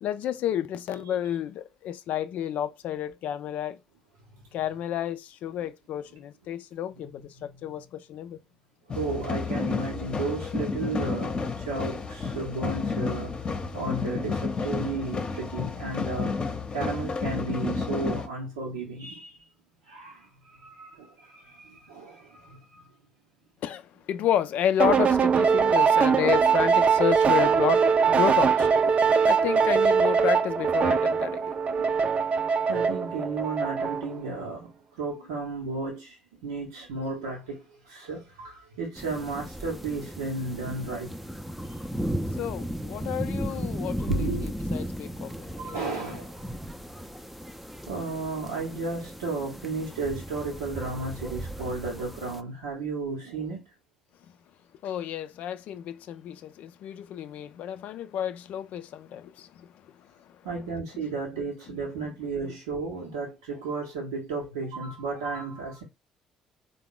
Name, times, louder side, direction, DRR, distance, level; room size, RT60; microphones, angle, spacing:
voice 1, 0.0-3.8 4.5-8.4 23.6-29.0 29.2-31.5 42.4-45.9 54.8-59.7 60.0-60.7 60.9-61.1 61.7-61.8 62.4-62.5, left 10 dB, 60° left, 0.4 m, -31 dB
sound 1, 8.9-18.3, left 4 dB, 35° left, 0.8 m, -31 dB
voice 2, 8.9-19.5 19.8-22.9 31.7-32.2 32.7-41.1 41.6-41.8 44.1-44.5 45.6-46.4 47.9-53.7 60.4-65.8, right 3 dB, 80° right, 0.9 m, -34 dB
sound 2, 24.8-34.2, right 6 dB, 45° right, 0.6 m, -22 dB
sound 3, 39.0-52.4, equal, 5° right, 0.5 m, -36 dB
3.7 x 2.2 x 3.6 m
hypercardioid pair, 50°, 3 cm